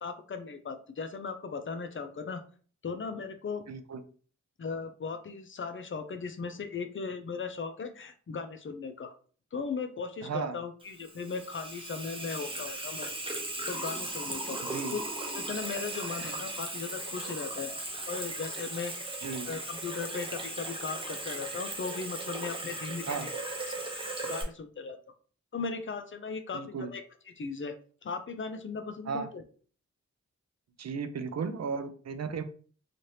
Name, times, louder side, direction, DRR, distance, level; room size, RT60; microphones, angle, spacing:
voice 1, 0.0-2.4 2.8-3.6 4.6-9.1 9.5-13.1 13.7-14.6 14.9-15.0 15.3-17.7 18.1-19.0 19.4-23.3 23.7-25.0 25.5-27.0 27.4-27.8 28.0-29.4, left 5 dB, 45° left, 8 dB, 0.4 m, -37 dB
voice 2, 3.7-4.0 10.2-10.6 14.7-15.0 19.2-19.5 23.1-23.3 26.5-26.9 29.1-29.3 30.8-32.4, right 5 dB, 60° right, 10 dB, 0.4 m, -35 dB
Water tap faucet / Sink (filling or washing), 10.8-24.4, right 2 dB, 20° right, 0.7 m, -37 dB
2.8 x 2.5 x 3.1 m, 0.43 s
wide cardioid pair, 110°, 29 cm